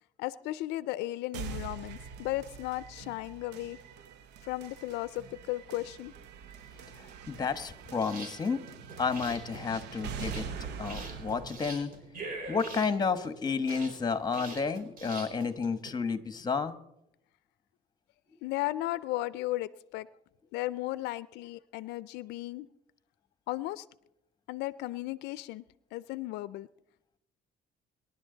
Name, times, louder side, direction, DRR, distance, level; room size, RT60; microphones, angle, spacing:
voice 1, 0.2-3.8 4.4-6.1 18.4-20.1 20.5-22.7 23.5-23.8 24.5-25.6 25.9-26.7, left 17 dB, 90° left, 17 dB, 0.5 m, -35 dB
sound 1, 1.3-13.3, right 6 dB, 80° right, 0.9 m, -44 dB
voice 2, 7.3-8.6 9.0-10.5 10.8-11.9 12.5-16.7, left 5 dB, 25° left, 11 dB, 1.2 m, -31 dB
sound 2, 7.9-15.9, right 2 dB, 55° right, 4.6 m, -43 dB
25.0 x 11.0 x 3.9 m, 0.83 s
cardioid pair, 110°, 17 cm